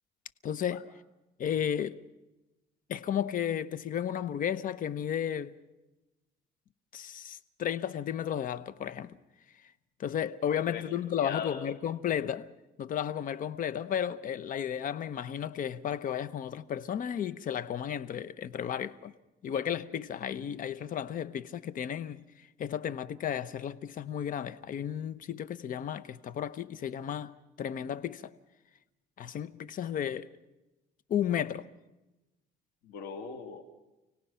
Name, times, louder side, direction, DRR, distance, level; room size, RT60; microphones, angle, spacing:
voice 1, 0.4-0.9 1.4-2.0 2.9-5.6 6.9-9.2 10.0-12.5 12.8-19.1 19.4-28.3 29.2-30.3 31.1-31.7, left 9 dB, 55° left, 1.0 m, -33 dB
voice 2, 11.2-11.7 32.8-33.6, left 7 dB, 85° left, 2.7 m, -39 dB
29.5 x 17.5 x 5.7 m
cardioid pair, 110°, 17 cm